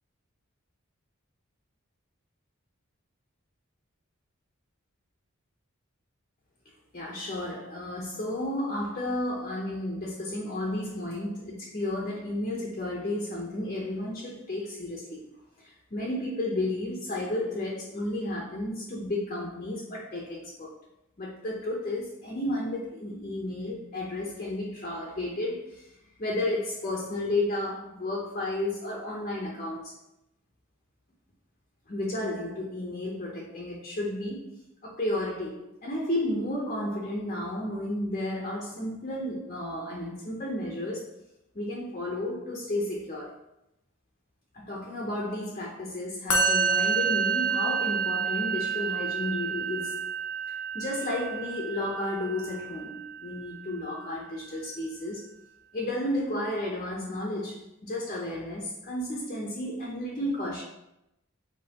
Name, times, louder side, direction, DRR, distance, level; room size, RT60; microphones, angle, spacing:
voice 1, 6.9-15.2 15.6-20.7 21.2-25.8 26.2-29.9 31.9-34.5 34.8-41.1 41.5-43.4 44.5-50.0 50.5-55.2 55.7-60.6, left 1 dB, 35° left, -4 dB, 0.8 m, -32 dB
Musical instrument, 46.3-53.6, right 5 dB, 75° left, 0.7 m, -29 dB
5.3 x 3.0 x 2.9 m, 0.86 s
head